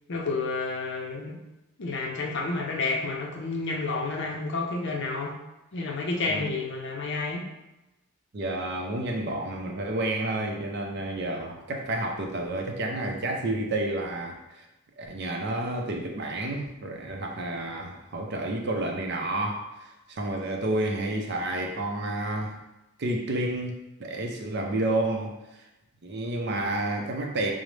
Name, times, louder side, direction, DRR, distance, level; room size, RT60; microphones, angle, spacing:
voice 1, 0.1-1.4 1.8-5.3 5.7-7.5, left 3 dB, 50° left, 1 dB, 0.5 m, -30 dB
voice 2, 8.3-14.7 15.0-19.7 20.1-22.6 23.0-23.7 24.0-25.3 26.0-27.5, right 1 dB, 50° right, 1 dB, 0.5 m, -30 dB
5.0 x 2.0 x 3.1 m, 0.99 s
head